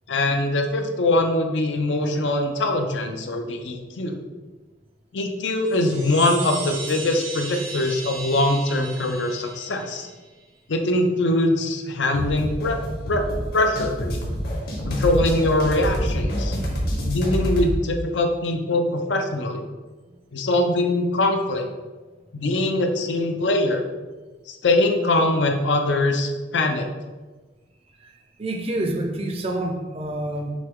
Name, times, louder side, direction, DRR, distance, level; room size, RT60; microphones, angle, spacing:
voice 1, 0.1-4.2 5.1-10.1 10.7-12.8 13.1-13.2 13.5-14.2 14.9-16.6 17.1-19.6 20.3-21.7 22.3-23.8 24.5-26.9, left 2 dB, 80° left, 4 dB, 0.6 m, -22 dB
Chime, 5.6-10.3, right 3 dB, 85° right, 1.1 m, -36 dB
sound 1, 12.1-17.8, equal, 60° left, 1.0 m, -27 dB
voice 2, 28.4-30.5, right 1 dB, 35° right, 3 dB, 0.5 m, -27 dB
6.1 x 2.3 x 3.5 m, 1.3 s
head